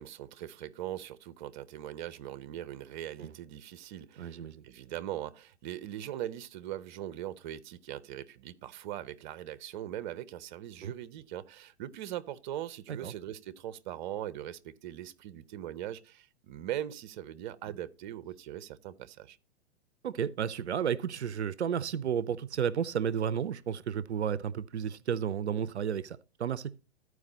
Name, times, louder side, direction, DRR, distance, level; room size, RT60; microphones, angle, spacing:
voice 1, 0.0-19.4, right 12 dB, 45° right, 0.7 m, -40 dB
voice 2, 4.2-4.6 10.8-10.9 13.0-13.1 20.0-26.7, right 8 dB, 85° right, 0.5 m, -32 dB
14.0 x 4.8 x 4.0 m
hypercardioid pair, 115°, 33 cm